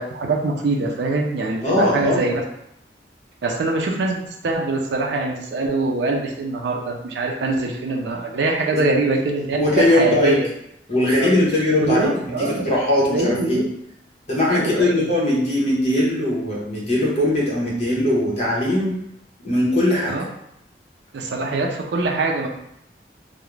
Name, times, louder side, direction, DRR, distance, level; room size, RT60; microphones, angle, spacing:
voice 1, 0.0-2.4 3.4-10.4 11.2-11.3 11.8-12.7 13.1-13.6 14.5-15.1 20.1-20.2 21.1-22.5, right 3 dB, 80° right, 1 dB, 0.4 m, -23 dB
voice 2, 1.6-2.2 8.7-8.9 9.6-10.4 10.9-13.6 14.3-19.0 19.4-20.2, left 1 dB, 40° left, -5 dB, 0.8 m, -20 dB
2.3 x 2.0 x 3.1 m, 0.77 s
head